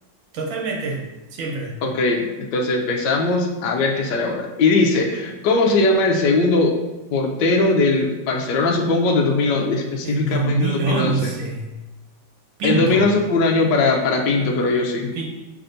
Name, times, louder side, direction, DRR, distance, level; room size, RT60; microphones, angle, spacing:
voice 1, 0.3-1.0 1.3-1.8 10.0-11.7 12.6-13.1 15.1-15.3, right 3 dB, 80° right, 0 dB, 1.6 m, -24 dB
voice 2, 1.8-6.7 7.1-11.3 12.6-15.1, left 3 dB, 75° left, 1 dB, 1.2 m, -20 dB
5.7 x 3.4 x 2.6 m, 1.0 s
omnidirectional pair, 2.1 m